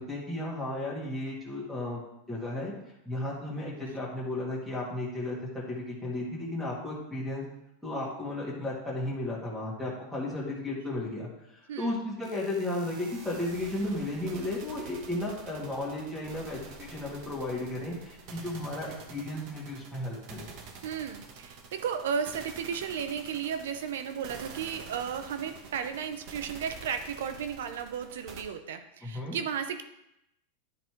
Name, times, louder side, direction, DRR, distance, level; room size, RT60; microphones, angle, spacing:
voice 1, 0.0-2.0 2.3-2.7 3.1-5.4 5.7-7.4 7.8-20.5 29.0-29.4, left 1 dB, ahead, -7 dB, 2.0 m, -34 dB
sound 1, 12.2-28.4, right 4 dB, 45° right, 1.3 m, -48 dB
voice 2, 20.8-29.8, right 7 dB, 85° right, 8 dB, 0.9 m, -34 dB
10.5 x 4.1 x 4.7 m, 0.84 s
supercardioid pair, 150°, 0 cm